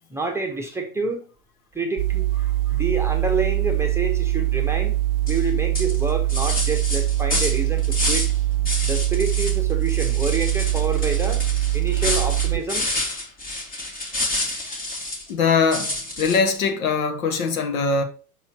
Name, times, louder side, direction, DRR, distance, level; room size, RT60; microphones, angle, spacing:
voice 1, 0.1-1.2 1.7-2.3 2.7-4.9 5.2-8.3 8.8-11.4 11.7-12.9, right 3 dB, 5° right, 1.1 m, -28 dB
sound 1, 2.0-12.6, right 15 dB, 40° right, 0.4 m, -23 dB
sound 2, 5.3-5.4 5.7-8.4 8.6-9.6 9.9-15.3 15.7-16.6, left 2 dB, 20° left, 1.7 m, -28 dB
voice 2, 15.3-18.0, left 5 dB, 60° left, 1.2 m, -22 dB
6.1 x 4.3 x 4.2 m
figure-of-eight pair, 95°, 45 cm